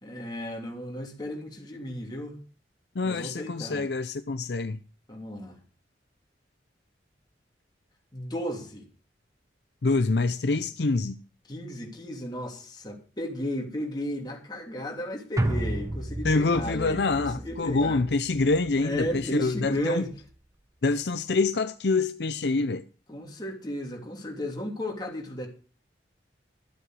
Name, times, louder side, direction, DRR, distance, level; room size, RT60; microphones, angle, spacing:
voice 1, 0.0-2.4 3.0-3.9 5.1-5.6 8.1-8.9 11.5-18.0 18.8-20.1 23.1-25.5, left 1 dB, 20° left, 2.9 m, -34 dB
voice 2, 2.9-4.8 9.8-11.2 16.2-20.0 20.8-22.8, left 3 dB, 65° left, 0.6 m, -26 dB
sound 1, 15.4-19.8 20.1-20.2, right 1 dB, 15° right, 0.8 m, -33 dB
12.5 x 8.0 x 6.2 m
head